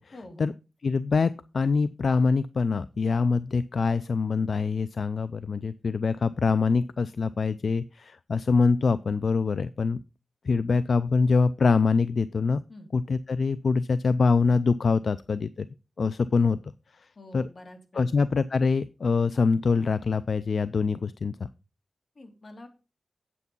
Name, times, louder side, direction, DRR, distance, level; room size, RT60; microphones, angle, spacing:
voice 1, 0.1-0.5 12.7-12.9 17.2-18.2 22.1-22.7, left 1 dB, 50° left, 4 dB, 2.7 m, -46 dB
voice 2, 0.8-10.0 10.4-12.6 12.9-15.7 16.0-16.6 17.3-17.5 18.0-21.4, left 4 dB, 75° left, 15 dB, 0.4 m, -24 dB
8.4 x 8.1 x 5.4 m, 0.32 s
wide cardioid pair, 100°, 0 cm